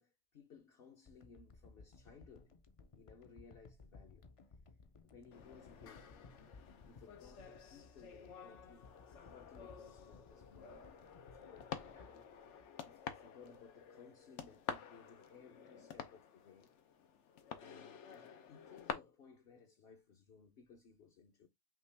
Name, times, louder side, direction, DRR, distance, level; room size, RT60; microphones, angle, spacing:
voice 1, 0.0-2.6 2.9-4.6 5.0-6.2 6.8-10.8 11.3-11.6 11.9-12.3 12.8-16.7 17.6-21.5, left 5 dB, 60° left, 0.9 m, -61 dB
sound 1, 1.1-13.3 13.8-13.9, left 3 dB, 45° left, 0.5 m, -61 dB
sound 2, 5.3-18.9, left 8 dB, 90° left, 1.0 m, -50 dB
5.8 x 2.4 x 3.3 m
omnidirectional pair, 1.2 m